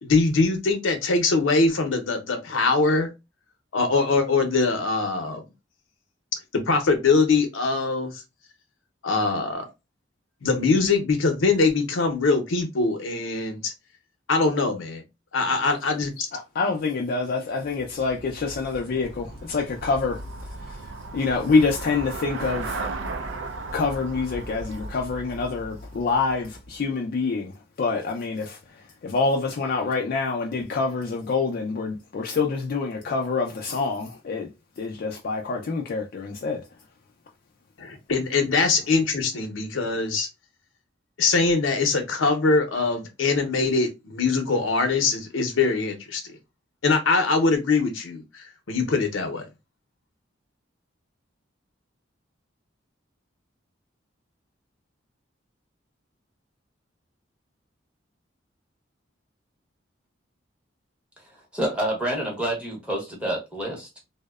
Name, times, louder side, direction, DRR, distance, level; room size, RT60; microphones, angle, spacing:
voice 1, 0.0-3.1 3.7-5.4 6.7-8.2 9.0-9.7 10.4-13.7 14.3-15.0 15.3-16.3 37.8-40.3 41.2-46.2 46.8-49.5, left 4 dB, 85° left, 0.6 m, -22 dB
voice 2, 16.3-20.2 20.6-22.8 23.7-34.5 34.8-36.6, left 4 dB, 50° left, 0.3 m, -26 dB
Traffic noise roadway noise / Bicycle, 17.6-26.8, right 2 dB, 75° right, 0.4 m, -36 dB
voice 3, 61.5-64.0, right 1 dB, 5° right, 0.8 m, -28 dB
2.7 x 2.0 x 2.3 m
head